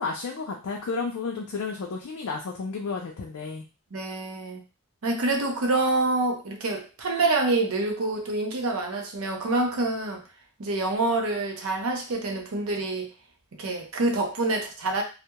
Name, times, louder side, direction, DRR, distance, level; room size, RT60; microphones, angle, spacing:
voice 1, 0.0-3.6, left 4 dB, 75° left, -1 dB, 0.4 m, -32 dB
voice 2, 3.9-4.6 5.0-10.2 10.6-13.1 13.6-15.0, right 2 dB, 70° right, 2 dB, 0.6 m, -26 dB
2.2 x 2.0 x 2.8 m, 0.32 s
head